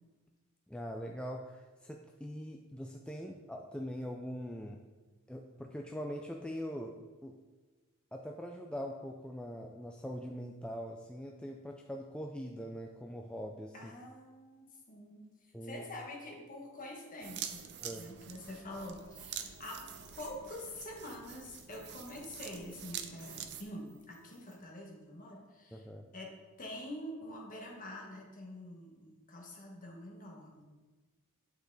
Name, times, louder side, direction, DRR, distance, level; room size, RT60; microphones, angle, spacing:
voice 1, 0.7-4.8 5.3-7.0 7.2-7.3 8.1-13.9 15.5-15.8 17.8-18.0 25.7-26.1, equal, 5° left, 1 dB, 0.3 m, -42 dB
voice 2, 13.7-15.3 15.6-19.8 20.1-25.8 26.1-30.6, left 1 dB, 40° left, 0 dB, 1.4 m, -46 dB
sound 1, 17.2-23.6, right 8 dB, 50° right, 0.5 m, -46 dB
sound 2, 19.0-24.5, right 4 dB, 75° right, 1.9 m, -58 dB
8.8 x 4.9 x 4.0 m, 1.3 s
head